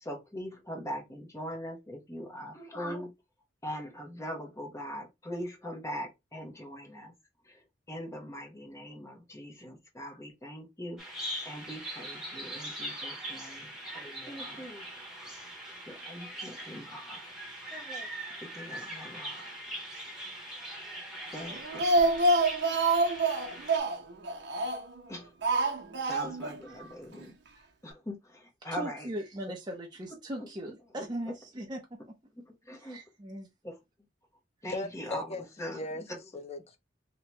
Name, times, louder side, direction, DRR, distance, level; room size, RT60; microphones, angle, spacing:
voice 1, 0.0-3.1 3.6-7.1 7.9-11.0 11.4-14.9 15.9-17.3 17.7-18.1 18.5-19.4 21.3-22.1 25.1-25.3 26.1-27.3 27.8-29.1 32.7-33.0 33.6-33.7 34.6-35.2 35.6-35.8, equal, 15° left, 1.0 m, -41 dB
Bird vocalization bird call bird song, 11.0-23.8, right 1 dB, 5° right, 1.2 m, -41 dB
Speech, 21.5-25.0 25.4-26.6 26.8-26.9 27.2-27.3, right 2 dB, 65° right, 0.8 m, -27 dB
voice 2, 28.6-32.1 32.8-33.5, right 1 dB, 25° right, 0.7 m, -39 dB
voice 3, 34.7-36.8, left 2 dB, 35° left, 0.5 m, -39 dB
2.9 x 2.8 x 3.3 m
head